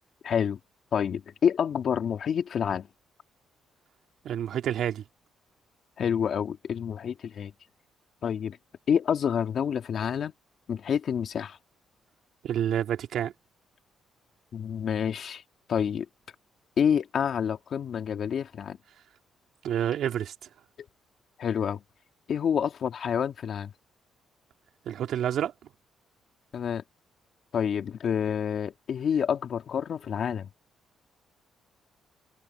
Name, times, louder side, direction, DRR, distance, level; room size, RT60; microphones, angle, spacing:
voice 1, 0.2-0.6 0.9-2.9 6.0-7.5 8.2-8.6 8.9-10.3 10.7-11.6 14.5-15.4 15.7-16.1 16.8-18.8 21.4-21.8 22.3-23.7 26.5-26.8 27.5-30.5, left 8 dB, 60° left, 2.3 m, -28 dB
voice 2, 4.2-5.0 12.4-13.3 19.6-20.3 24.8-25.5, right 10 dB, 70° right, 3.3 m, -28 dB
cardioid pair, 90°, 0 cm